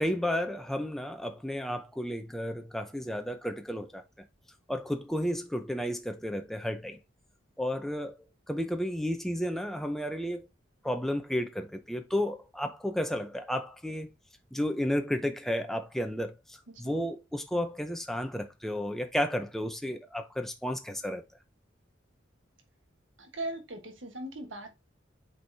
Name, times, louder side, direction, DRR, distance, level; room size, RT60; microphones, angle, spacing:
voice 1, 0.0-4.0 4.7-7.0 7.6-10.5 10.8-14.1 14.5-21.2, equal, ahead, 0.6 m, -32 dB
voice 2, 23.2-24.7, right 1 dB, 75° right, 1.4 m, -39 dB
8.0 x 4.5 x 2.7 m
head